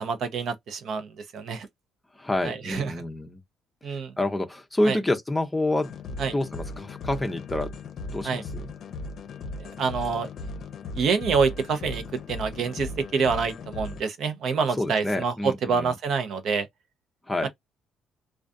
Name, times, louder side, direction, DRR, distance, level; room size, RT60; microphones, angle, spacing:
voice 1, 0.0-1.7 2.4-2.9 3.8-4.1 4.9-5.0 6.2-6.3 8.2-8.4 9.6-10.3 11.0-12.0 12.3-16.7 17.4-17.5, right 5 dB, 60° right, 0.6 m, -27 dB
voice 2, 2.1-3.4 3.8-5.9 6.3-7.7 8.1-8.7 14.8-16.0 17.3-17.5, left 1 dB, 10° left, 0.6 m, -28 dB
sound 1, 5.8-14.0, left 2 dB, 55° left, 0.6 m, -37 dB
2.4 x 2.2 x 2.5 m
cardioid pair, 110°, 0 cm